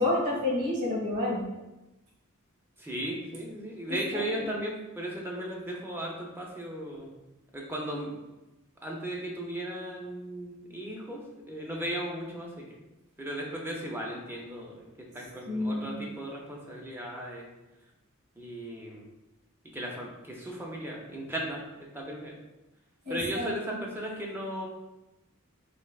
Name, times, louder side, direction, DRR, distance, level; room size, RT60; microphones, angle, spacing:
voice 1, 0.0-1.5 3.9-4.5 15.5-16.0 23.0-23.8, left 2 dB, 50° right, -3 dB, 1.4 m, -30 dB
voice 2, 2.8-7.1 7.5-8.1 8.8-12.8 13.2-17.5 18.4-19.0 19.7-21.6 21.9-22.4 23.1-24.7, right 1 dB, 10° right, -1 dB, 0.5 m, -36 dB
3.3 x 3.1 x 2.3 m, 1.0 s
head